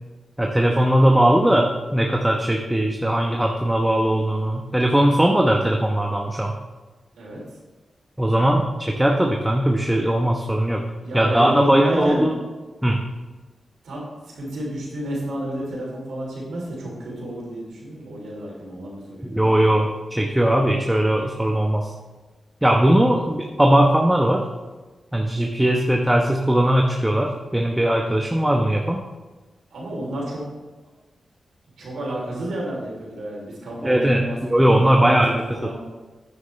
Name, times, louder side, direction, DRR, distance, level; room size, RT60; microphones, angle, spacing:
voice 1, 0.4-6.5 8.2-10.8 11.1-12.4 12.8-13.0 19.2-21.9 22.6-24.4 25.1-29.0 33.8-35.4, right 1 dB, 10° right, 1 dB, 1.0 m, -19 dB
voice 2, 11.0-12.3 13.8-14.1 14.3-19.7 29.7-30.4 31.8-35.2 35.5-35.8, right 1 dB, 85° right, -4 dB, 3.3 m, -30 dB
9.4 x 9.1 x 3.3 m, 1.3 s
cardioid pair, 45°, 0 cm